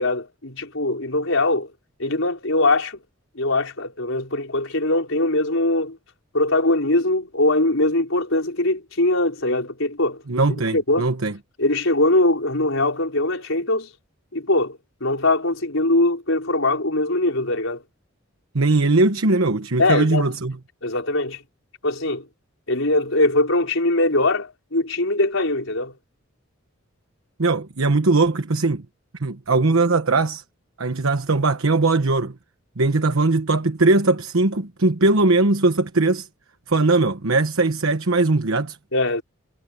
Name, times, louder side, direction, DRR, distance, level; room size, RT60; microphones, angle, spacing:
voice 1, 0.0-1.7 2.0-3.0 3.4-6.0 6.3-10.2 10.7-11.1 11.6-13.9 14.3-17.8 19.8-20.3 20.8-21.4 21.8-22.2 22.7-25.9 38.9-39.2, left 2 dB, 70° left, 5.2 m, -21 dB
voice 2, 10.3-11.3 18.5-20.5 27.4-28.8 29.2-30.4 30.8-32.3 32.8-36.3 36.7-38.8, right 3 dB, 80° right, 1.2 m, -20 dB
head